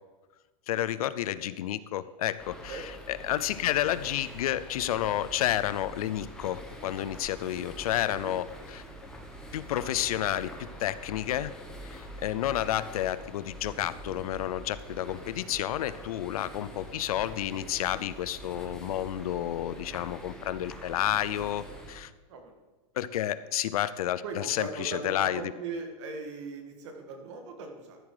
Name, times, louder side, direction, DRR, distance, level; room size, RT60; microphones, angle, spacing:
voice 1, 0.7-8.8 9.5-10.5 10.8-11.5 11.8-22.1 23.0-25.5, left 12 dB, 75° left, 16 dB, 0.6 m, -30 dB
sound 1, 2.4-21.9, right 1 dB, 5° left, 1.0 m, -45 dB
voice 2, 24.2-28.0, right 4 dB, 50° right, 4 dB, 2.0 m, -39 dB
13.5 x 7.5 x 5.0 m, 1.2 s
supercardioid pair, 180°, 19 cm